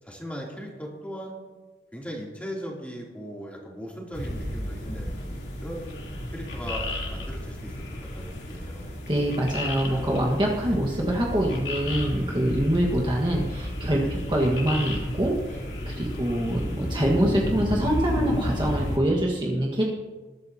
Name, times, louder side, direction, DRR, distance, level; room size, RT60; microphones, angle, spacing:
voice 1, 0.0-1.4 1.9-5.1 5.6-7.8 8.1-8.9 10.6-10.8 14.0-14.2, equal, 10° left, -3 dB, 3.0 m, -38 dB
sound 1, 4.1-19.0, left 1 dB, 75° left, 3.2 m, -32 dB
voice 2, 9.1-19.8, right 1 dB, 25° right, -2 dB, 1.5 m, -25 dB
sound 2, 12.8-12.9 13.3-13.7 14.1-14.6 14.9-15.4 15.7-16.2 16.5-17.0 17.3-17.5, equal, 55° left, 2.9 m, -38 dB
21.0 x 12.5 x 2.8 m, 1.3 s
head